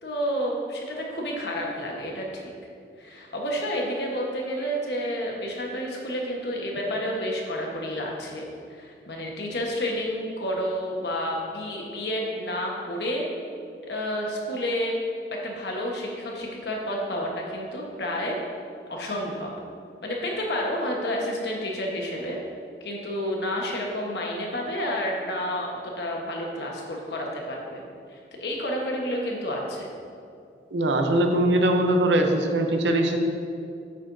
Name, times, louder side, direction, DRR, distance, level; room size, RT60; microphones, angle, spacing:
voice 1, 0.0-2.5 3.0-13.3 13.9-15.0 15.3-18.4 18.9-19.5 20.0-22.4 22.8-25.7 26.0-27.8 28.1-29.9, equal, 65° left, -1 dB, 1.2 m, -30 dB
voice 2, 30.7-33.2, right 1 dB, 80° right, 4 dB, 0.7 m, -21 dB
8.5 x 7.7 x 2.7 m, 2.4 s
head